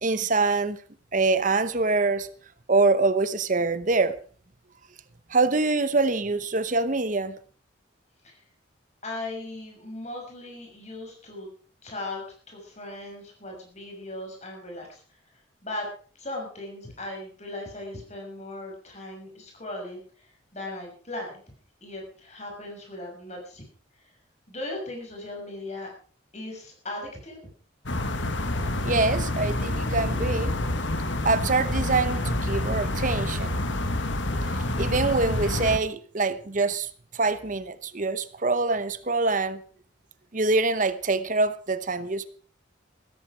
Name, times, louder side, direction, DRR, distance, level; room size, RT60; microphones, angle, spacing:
voice 1, 0.0-0.8 1.1-2.3 2.7-4.2 5.3-7.4 28.8-30.5 31.2-33.5 34.8-36.9 37.1-39.6 40.3-42.3, right 3 dB, 40° right, 0.8 m, -24 dB
voice 2, 9.0-11.5 11.8-15.0 15.6-15.9 16.1-21.4 21.8-23.6 24.5-25.9 26.3-27.4, left 2 dB, 35° left, 6.3 m, -38 dB
sound 1, 27.9-35.8, left 1 dB, 65° left, 1.6 m, -27 dB
15.5 x 14.0 x 4.9 m
head